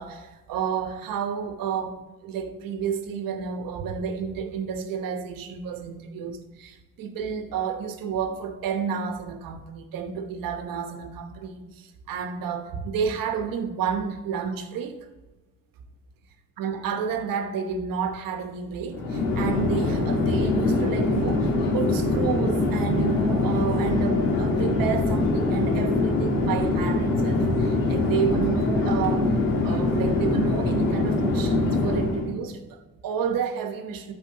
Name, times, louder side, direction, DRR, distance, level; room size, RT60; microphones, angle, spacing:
voice 1, 0.0-15.1 16.6-29.3 29.6-34.1, right 7 dB, 75° right, 1.1 m, -30 dB
Chatter / Fixed-wing aircraft airplane, 18.9-32.3, left 2 dB, 80° left, 1.6 m, -23 dB
12.0 x 4.4 x 3.8 m
cardioid pair, 80°, 34 cm